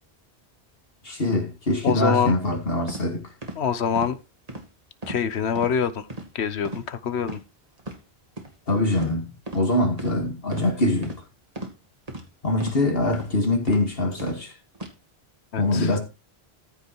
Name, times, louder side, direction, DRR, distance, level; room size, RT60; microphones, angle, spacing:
voice 1, 1.0-3.3 8.7-11.2 12.4-14.5 15.6-16.0, left 1 dB, 65° left, 2.3 m, -23 dB
voice 2, 1.8-2.3 3.6-4.2 5.1-6.1 6.3-7.4 15.5-16.0, left 7 dB, 90° left, 1.2 m, -25 dB
sound 1, 2.9-3.0 3.4-3.6 4.0-4.1 4.5-4.7 5.0-5.2 5.5-5.7 6.1-6.3 6.6-6.9 7.2-7.4 7.8-8.0 8.4-8.5 9.0-9.2 9.5-9.6 10.0-10.1 10.5-10.7 11.0-11.2 11.6-11.7 12.1-12.2 12.6-12.8 13.1-13.3 13.7-13.8 14.2-14.4 14.7-14.9, right 1 dB, 35° right, 2.2 m, -35 dB
14.0 x 5.5 x 4.6 m
omnidirectional pair, 1.1 m